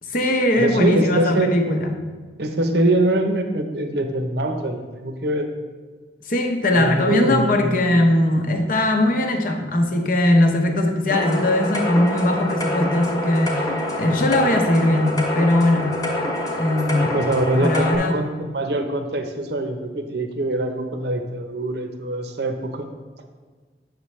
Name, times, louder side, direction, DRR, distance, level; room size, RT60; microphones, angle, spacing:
voice 1, 0.0-2.0 6.3-16.0 16.5-18.2, left 1 dB, 50° left, 4 dB, 0.8 m, -20 dB
voice 2, 0.5-1.5 2.4-5.5 6.7-7.6 16.9-22.9, right 1 dB, 65° right, 6 dB, 0.7 m, -23 dB
sound 1, 11.1-18.0, left 1 dB, 20° left, 1.1 m, -26 dB
8.3 x 6.4 x 3.2 m, 1.4 s
head